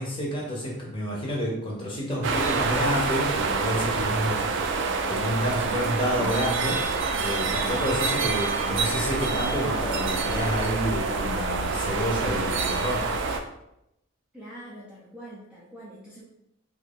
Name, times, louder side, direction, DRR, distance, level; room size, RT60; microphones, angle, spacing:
voice 1, 0.0-4.7 5.1-6.8 7.2-13.1, equal, 25° left, -4 dB, 0.8 m, -29 dB
sound 1, 2.2-13.4, right 4 dB, 55° right, 0.3 m, -27 dB
voice 2, 14.3-16.2, right 1 dB, 5° right, -8 dB, 0.5 m, -44 dB
3.0 x 2.4 x 3.4 m, 0.82 s
head